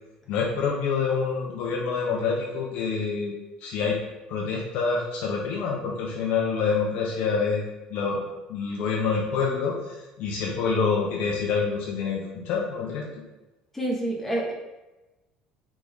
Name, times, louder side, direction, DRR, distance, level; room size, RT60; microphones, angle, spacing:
voice 1, 0.3-3.3 3.6-4.0 4.3-7.6 7.9-8.2 8.5-13.0, left 5 dB, 70° left, -2 dB, 0.6 m, -27 dB
voice 2, 13.7-14.5, right 1 dB, 10° left, -2 dB, 0.9 m, -27 dB
3.5 x 2.5 x 3.5 m, 1.1 s
supercardioid pair, 100°, 2 cm